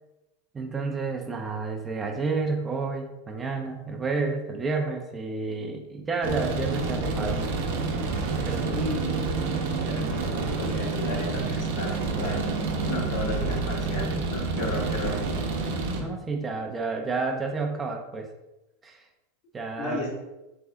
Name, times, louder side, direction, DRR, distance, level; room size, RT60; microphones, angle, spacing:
voice 1, 0.5-7.4 8.4-8.8 16.0-18.3 18.8-19.0 19.5-20.0, right 4 dB, 20° right, 2 dB, 0.5 m, -30 dB
sound 1, 6.2-16.0, right 3 dB, 70° right, 0.8 m, -28 dB
voice 2, 8.7-12.5 12.8-15.2 19.8-20.1, left 1 dB, 60° left, -2 dB, 1.4 m, -34 dB
3.5 x 3.4 x 3.4 m, 0.98 s
supercardioid pair, 125°, 0 cm